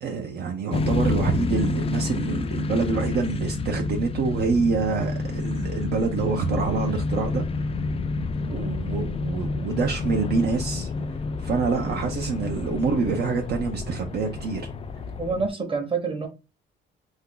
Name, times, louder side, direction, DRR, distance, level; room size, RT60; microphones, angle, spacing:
voice 1, 0.0-7.4 8.5-10.9 11.4-14.7, right 4 dB, 55° right, 0.6 m, -26 dB
sound 1, 0.7-15.5, left 3 dB, 30° left, 0.3 m, -29 dB
voice 2, 15.2-16.3, right 4 dB, 25° right, 0.9 m, -27 dB
2.7 x 2.3 x 3.7 m
cardioid pair, 90°, 20 cm